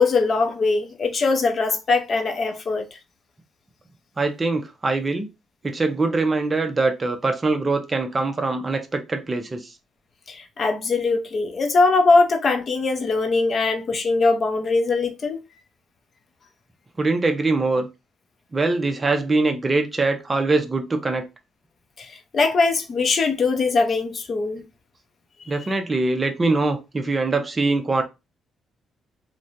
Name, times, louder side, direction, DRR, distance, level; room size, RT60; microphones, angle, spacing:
voice 1, 0.0-2.9 10.3-15.4 22.0-24.6 25.5-25.6, left 3 dB, 45° left, 0.6 m, -21 dB
voice 2, 4.2-5.3 5.6-9.7 17.0-17.9 18.5-21.3 25.5-28.0, right 3 dB, 25° right, 0.6 m, -23 dB
3.0 x 2.2 x 2.5 m
cardioid pair, 90°, 0 cm